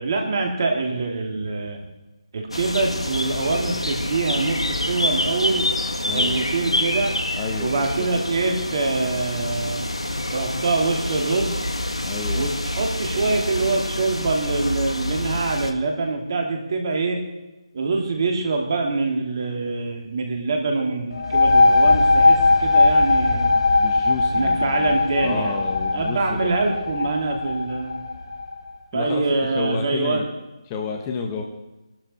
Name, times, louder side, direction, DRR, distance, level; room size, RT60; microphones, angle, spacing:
voice 1, 0.0-1.8 2.3-5.7 6.0-7.2 7.6-9.9 10.3-11.7 12.3-17.2 17.7-23.6 24.3-25.6 25.9-28.0 28.9-30.2, right 3 dB, 45° right, 2 dB, 3.1 m, -24 dB
sound 1, 2.5-15.7, left 1 dB, 85° left, 1.8 m, -27 dB
voice 2, 6.0-6.4 7.3-8.1 12.1-12.5 23.8-26.7 27.0-27.1 28.9-29.2 29.5-30.3 30.7-31.4, left 5 dB, 20° left, 2 dB, 1.4 m, -31 dB
sound 2, 21.1-28.5, left 3 dB, 60° left, 1.8 m, -19 dB
23.0 x 12.5 x 4.5 m, 1.1 s
figure-of-eight pair, 155°, 3 cm